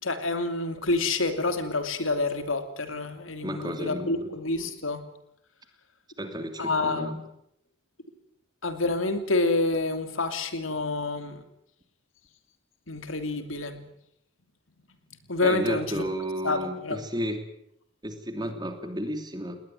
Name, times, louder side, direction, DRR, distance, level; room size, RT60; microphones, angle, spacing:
voice 1, 0.0-5.0 6.6-7.1 8.6-11.4 12.9-13.8 15.3-16.0 16.4-17.0, left 2 dB, 85° left, 8 dB, 3.0 m, -28 dB
voice 2, 3.4-4.3 6.2-7.2 15.4-17.4 18.0-19.6, equal, 20° right, 7 dB, 2.8 m, -32 dB
20.0 x 19.5 x 9.2 m, 0.75 s
head